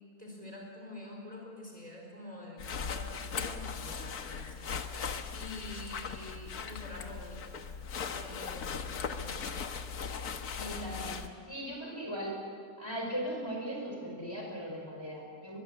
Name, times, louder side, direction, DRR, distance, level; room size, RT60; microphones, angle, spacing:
voice 1, 0.2-4.7 5.3-7.5 8.1-9.4 9.7-9.8, left 1 dB, 25° right, -1 dB, 4.6 m, -47 dB
sound 1, 2.6-11.3, left 6 dB, 85° left, 1.7 m, -38 dB
voice 2, 10.5-12.4 12.8-15.6, equal, 15° left, -1 dB, 5.6 m, -38 dB
22.5 x 22.0 x 8.4 m, 2.3 s
omnidirectional pair, 1.6 m